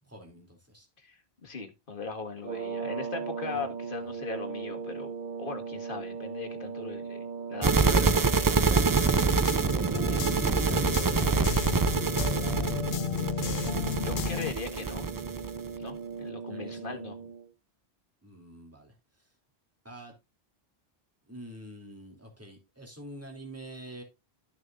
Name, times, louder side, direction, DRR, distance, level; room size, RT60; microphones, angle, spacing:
voice 1, 0.0-0.9 3.5-3.6 10.1-11.9 16.5-17.3 18.2-19.3 19.8-20.1 21.3-24.0, right 1 dB, 15° right, 2.9 m, -45 dB
voice 2, 1.0-5.1 5.4-8.8 14.0-15.1 15.8-17.1, left 4 dB, 55° left, 1.8 m, -39 dB
sound 1, 2.4-17.5, right 5 dB, 50° right, 1.0 m, -38 dB
sound 2, 7.6-15.7, right 4 dB, 35° right, 0.3 m, -26 dB
sound 3, 8.8-14.5, left 9 dB, 85° left, 1.0 m, -34 dB
13.0 x 6.5 x 2.5 m
omnidirectional pair, 1.1 m